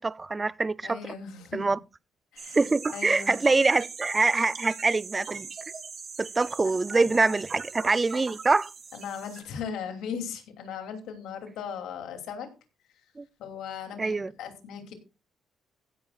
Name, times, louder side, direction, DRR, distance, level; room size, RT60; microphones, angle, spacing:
voice 1, 0.0-1.1 1.5-1.8 2.5-5.5 6.2-8.7 13.2-13.3 14.0-14.3, right 3 dB, 25° right, 0.4 m, -25 dB
voice 2, 0.8-1.7 2.3-3.4 6.9-7.4 8.9-12.5 13.4-14.9, left 7 dB, 85° left, 2.8 m, -38 dB
sound 1, 2.4-9.4, right 5 dB, 45° right, 3.2 m, -40 dB
16.0 x 10.0 x 2.4 m
cardioid pair, 90°, 0 cm